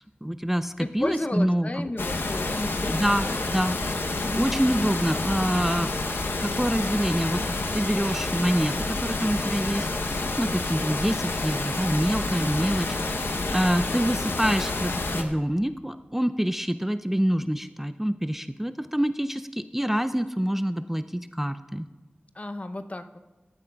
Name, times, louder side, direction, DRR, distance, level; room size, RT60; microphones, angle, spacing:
voice 1, 0.2-1.9 2.5-2.6 2.9-3.8 4.4-5.9 6.4-7.4 7.7-21.8, equal, 5° right, 11 dB, 0.3 m, -26 dB
voice 2, 0.8-3.4 4.2-4.5 22.4-23.2, left 2 dB, 35° left, 8 dB, 0.6 m, -33 dB
sound 1, 2.0-15.2, left 2 dB, 85° left, 0.7 m, -29 dB
14.5 x 12.0 x 2.3 m, 1.2 s
wide cardioid pair, 55°, 4 cm